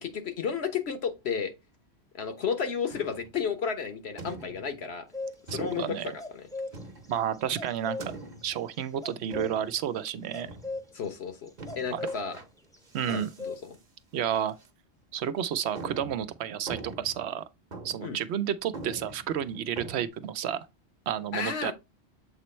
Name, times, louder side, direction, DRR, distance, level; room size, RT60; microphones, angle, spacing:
voice 1, 0.0-1.5 2.1-5.1 5.5-6.4 10.9-11.5 11.8-12.4 13.1-13.8 18.0-18.2 21.3-21.7, left 6 dB, 70° left, 1.3 m, -32 dB
sound 1, 2.9-3.4 4.2-4.8 5.5-6.0 6.7-7.3 8.0-8.6 9.3-9.9 10.4-10.8 11.6-12.5 12.9-13.4 13.7-13.8 14.5-14.7 15.1-15.2 15.7-17.3 17.7-18.2 18.4-18.5 18.7-20.1, right 2 dB, 45° right, 1.0 m, -43 dB
sound 2, 5.1-5.4 6.2-8.1 9.0-9.5 10.3-11.0 11.5-12.2 12.7-12.8 13.1-13.6, left 3 dB, 5° left, 0.7 m, -36 dB
voice 2, 5.5-6.1 7.1-8.1 8.4-10.5 11.9-12.0 12.9-13.3 14.1-14.5 15.1-17.4 17.8-20.6 21.1-21.7, right 9 dB, 75° right, 0.8 m, -31 dB
7.4 x 3.0 x 4.3 m
omnidirectional pair, 1.1 m